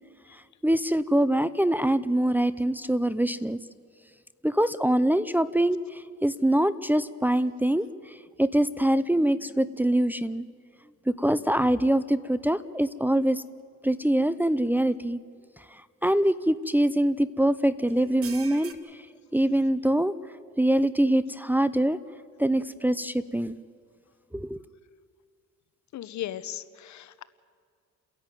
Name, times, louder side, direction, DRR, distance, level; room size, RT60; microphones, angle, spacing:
voice 1, 0.6-3.6 4.4-5.8 6.2-7.9 8.4-10.4 11.1-13.4 13.8-15.2 16.0-18.7 19.3-20.1 20.6-22.0 22.4-23.6 24.3-24.6, right 1 dB, 5° right, 13 dB, 0.6 m, -24 dB
sound 1, 14.0-14.1 14.7-14.8 16.6-16.9 17.9-18.7, right 6 dB, 50° right, 1.6 m, -43 dB
voice 2, 25.9-27.2, left 12 dB, 70° left, 15 dB, 1.0 m, -37 dB
30.0 x 11.0 x 9.2 m, 2.1 s
cardioid pair, 90°, 30 cm